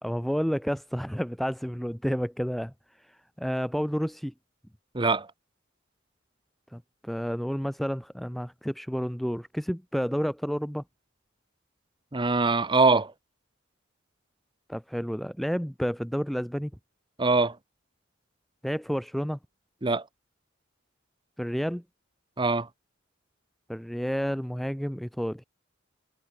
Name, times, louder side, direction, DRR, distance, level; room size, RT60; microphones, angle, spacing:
voice 1, 0.0-2.7 3.0-4.3 6.7-10.8 14.7-16.7 18.6-19.4 21.4-21.8 23.7-25.4, equal, ahead, 1.0 m, -30 dB
voice 2, 4.9-5.3 12.1-13.1 17.2-17.6 19.8-20.0 22.4-22.7, right 3 dB, 25° right, 0.9 m, -23 dB
head